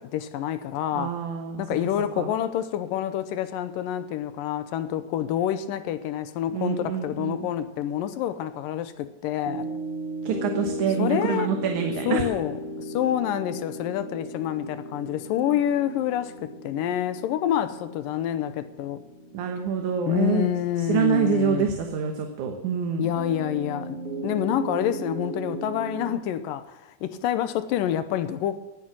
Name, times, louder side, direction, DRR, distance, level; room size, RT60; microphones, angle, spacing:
voice 1, 0.0-1.2 1.6-9.7 11.0-11.5 12.1-19.0 20.1-21.8 23.0-24.0 24.2-28.6, left 11 dB, 80° left, 12 dB, 2.4 m, -27 dB
voice 2, 0.9-1.6 2.2-2.3 6.5-7.5 10.2-12.3 19.3-20.5 20.8-23.1, right 7 dB, 65° right, 4 dB, 2.4 m, -26 dB
sound 1, 9.4-21.9 23.1-26.2, right 1 dB, 35° right, 1.7 m, -36 dB
18.5 x 8.6 x 6.2 m, 1.1 s
omnidirectional pair, 4.0 m